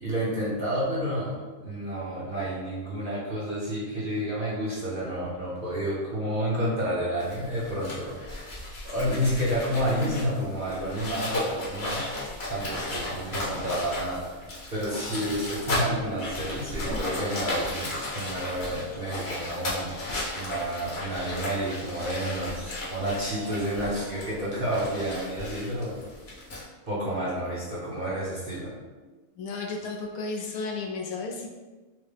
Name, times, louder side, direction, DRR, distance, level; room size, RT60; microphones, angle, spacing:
voice 1, 0.0-8.6 8.8-12.1 12.5-14.2 14.7-20.0 20.3-26.0 26.9-28.7, equal, 45° right, -8 dB, 0.8 m, -30 dB
sound 1, 7.2-26.6, left 1 dB, 50° left, 1.1 m, -35 dB
sound 2, 16.7-24.9, right 2 dB, 80° right, 1.4 m, -47 dB
voice 2, 29.4-31.5, left 3 dB, 75° left, 1 dB, 1.0 m, -33 dB
4.6 x 2.0 x 3.3 m, 1.2 s
omnidirectional pair, 1.6 m